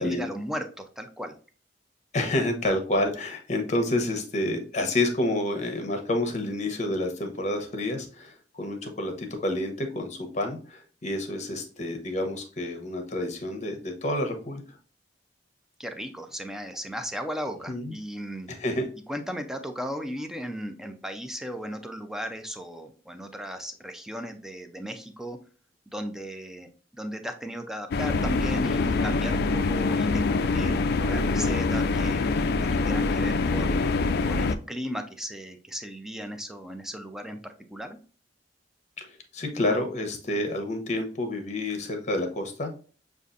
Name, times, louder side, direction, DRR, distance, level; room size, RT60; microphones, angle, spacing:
voice 1, 0.0-1.4 15.8-18.5 19.1-25.4 25.9-32.3 32.6-33.9 34.3-38.0, equal, 5° right, 6 dB, 0.5 m, -36 dB
voice 2, 2.1-14.6 17.7-17.9 18.6-18.9 39.0-42.7, left 1 dB, 40° left, 5 dB, 0.9 m, -29 dB
sound 1, 27.9-34.6, left 3 dB, 60° left, 0.3 m, -25 dB
6.7 x 2.5 x 2.5 m, 0.40 s
head